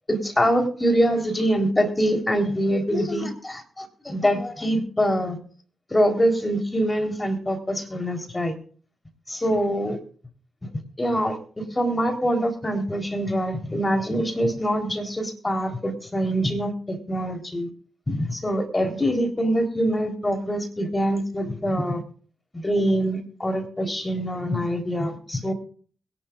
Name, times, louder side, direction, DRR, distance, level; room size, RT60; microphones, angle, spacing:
voice 1, 0.1-5.4 5.9-8.6 9.3-10.0 10.6-10.7 11.0-17.7 18.1-22.0 22.5-25.5, equal, 25° left, 5 dB, 3.9 m, -24 dB
22.0 x 11.5 x 2.5 m, 0.43 s
hypercardioid pair, 40°, 0 cm